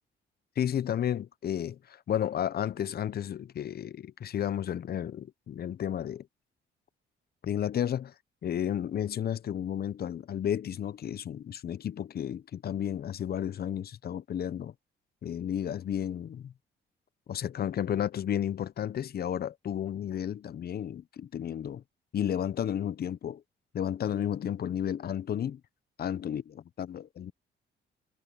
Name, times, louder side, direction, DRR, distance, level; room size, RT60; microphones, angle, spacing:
voice 1, 0.6-6.3 7.4-8.1 8.4-14.7 15.2-16.5 17.3-21.8 22.1-23.4 23.7-25.6 26.0-27.3, left 9 dB, 50° left, 0.8 m, -32 dB
cardioid pair, 90°, 20 cm